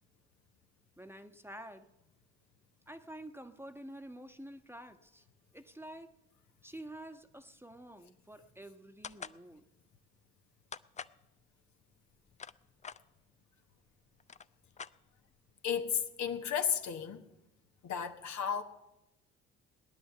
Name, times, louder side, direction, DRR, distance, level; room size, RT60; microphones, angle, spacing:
voice 1, 1.0-1.9 2.9-5.2 5.5-6.1 6.6-9.7, right 1 dB, 5° right, 1.2 m, -49 dB
sound 1, 9.0-9.4 10.7-11.2 12.1-13.0 13.8-13.9 14.2-15.4, left 6 dB, 20° left, 0.5 m, -46 dB
voice 2, 15.6-17.3 17.8-18.6, left 7 dB, 55° left, 1.3 m, -33 dB
18.5 x 10.0 x 6.8 m
hypercardioid pair, 50°, 34 cm